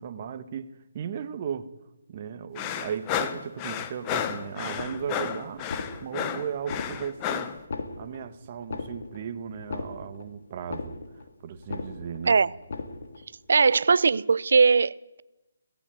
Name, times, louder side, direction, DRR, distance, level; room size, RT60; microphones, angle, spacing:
voice 1, 0.0-1.7 2.1-5.7 6.0-7.5 8.0-11.0 11.4-12.4, right 8 dB, 35° right, 1.5 m, -36 dB
sound 1, 2.6-7.6, left 9 dB, 20° left, 1.3 m, -32 dB
sound 2, 4.7-5.3 5.6-6.3 6.6-7.3 7.6-8.3 8.6-9.3 9.6-10.3 10.6-11.3 11.6-12.3 12.6-13.3, left 3 dB, 60° left, 2.8 m, -37 dB
voice 2, 13.5-15.2, right 5 dB, 65° right, 0.7 m, -20 dB
18.0 x 16.0 x 9.3 m
figure-of-eight pair, 155°, 0 cm